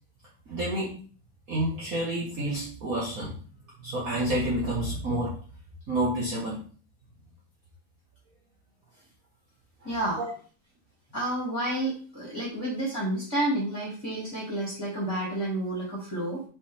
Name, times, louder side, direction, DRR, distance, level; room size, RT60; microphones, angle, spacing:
voice 1, 0.5-1.0 1.5-3.4 3.8-5.4 5.9-6.6 9.8-10.3, right 1 dB, 45° right, -5 dB, 1.5 m, -29 dB
voice 2, 9.8-10.3 11.1-16.4, right 1 dB, 10° left, -5 dB, 2.1 m, -30 dB
5.3 x 5.2 x 3.3 m, 0.40 s
omnidirectional pair, 2.4 m